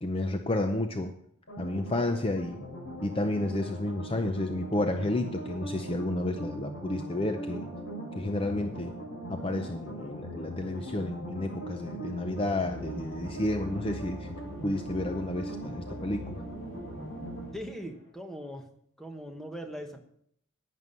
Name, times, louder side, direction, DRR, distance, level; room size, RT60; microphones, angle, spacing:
voice 1, 0.0-1.1 1.6-2.6 3.0-7.7 8.2-8.9 9.3-14.3 14.6-16.4, left 1 dB, 25° left, 6 dB, 0.5 m, -31 dB
sound 1, 1.5-17.4, right 1 dB, 55° left, 5.9 m, -40 dB
sound 2, 12.6-18.1, equal, 80° left, 4.8 m, -44 dB
voice 2, 17.5-18.7 19.0-20.0, equal, ahead, 4 dB, 1.1 m, -40 dB
11.0 x 9.4 x 5.5 m, 0.68 s
head